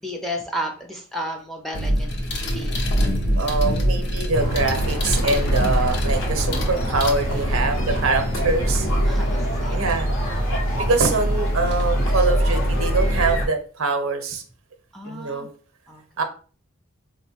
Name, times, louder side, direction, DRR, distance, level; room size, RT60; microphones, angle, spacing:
voice 1, 0.0-2.1 2.5-2.7 7.6-7.7 9.0-9.8 14.9-15.5 15.9-16.0, equal, ahead, 1 dB, 0.5 m, -32 dB
sound 1, 1.7-7.7 10.2-10.3 11.7-11.9 12.3-13.2, equal, 55° left, 0.5 m, -25 dB
voice 2, 3.4-9.2 9.7-10.1 10.8-14.4 15.0-15.5 16.2-16.3, right 3 dB, 85° right, 5 dB, 0.7 m, -24 dB
sound 2, 4.3-13.5, equal, 75° left, 0.8 m, -23 dB
4.2 x 2.1 x 2.8 m, 0.39 s
head